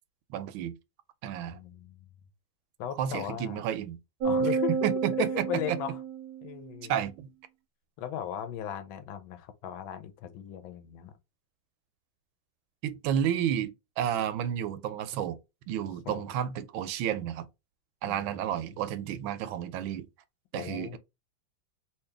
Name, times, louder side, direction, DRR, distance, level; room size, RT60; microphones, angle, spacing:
voice 1, 0.3-0.7 1.2-1.6 3.0-4.0 4.8-5.5 6.9-7.3 12.8-15.4 15.7-17.5 18.0-20.1 20.5-21.0, right 10 dB, 85° right, 1.4 m, -31 dB
voice 2, 1.5-2.0 2.8-3.6 4.2-4.7 5.2-6.0 6.4-6.9 8.0-11.1 16.1-16.3 18.1-18.4 20.5-21.0, left 10 dB, 85° left, 1.4 m, -37 dB
sound 1, 4.2-6.7, right 5 dB, 65° right, 1.0 m, -30 dB
3.2 x 2.8 x 3.4 m
omnidirectional pair, 2.1 m